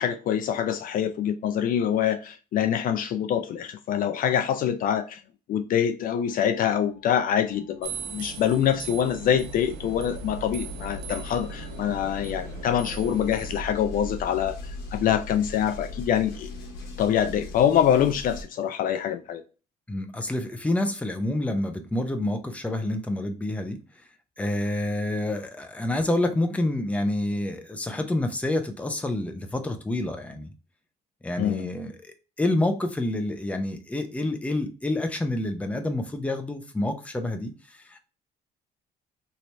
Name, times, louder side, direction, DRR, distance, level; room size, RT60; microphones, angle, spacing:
voice 1, 0.0-5.2 5.5-16.5 17.0-19.4 31.4-31.7, left 9 dB, 55° left, 0.4 m, -25 dB
sound 1, 6.0-18.4, left 2 dB, 85° left, 1.0 m, -40 dB
sound 2, 7.8-13.6, right 9 dB, 80° right, 0.5 m, -40 dB
voice 2, 19.9-23.8 24.4-30.5 31.2-38.0, left 1 dB, 10° left, 0.6 m, -28 dB
3.0 x 2.8 x 3.2 m
cardioid pair, 110°, 17 cm